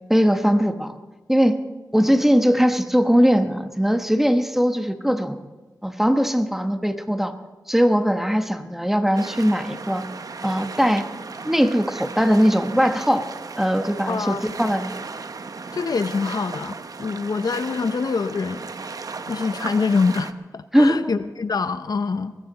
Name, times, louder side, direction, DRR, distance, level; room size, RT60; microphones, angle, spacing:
voice 1, 0.1-1.0 1.3-1.6 1.9-5.4 5.8-7.3 7.7-10.0 10.4-11.0 11.4-13.2 13.6-14.9 20.7-21.0, equal, 5° right, 7 dB, 1.1 m, -20 dB
sound 1, 9.2-20.3, right 4 dB, 60° right, 0.7 m, -36 dB
voice 2, 14.1-14.4 15.7-18.7 19.3-22.3, left 4 dB, 70° left, 11 dB, 0.7 m, -25 dB
22.0 x 15.0 x 4.0 m, 1.2 s
wide cardioid pair, 85°, 7 cm